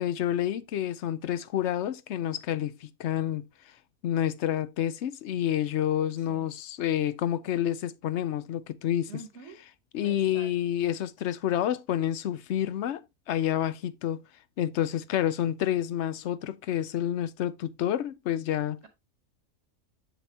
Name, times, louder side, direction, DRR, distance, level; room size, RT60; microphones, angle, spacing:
voice 1, 0.0-3.4 4.0-9.1 9.9-14.2 14.6-18.8, left 11 dB, 65° left, 0.8 m, -29 dB
voice 2, 6.2-6.5 9.1-9.6 10.0-10.5, right 5 dB, 60° right, 1.4 m, -46 dB
7.7 x 6.8 x 2.8 m
omnidirectional pair, 1.4 m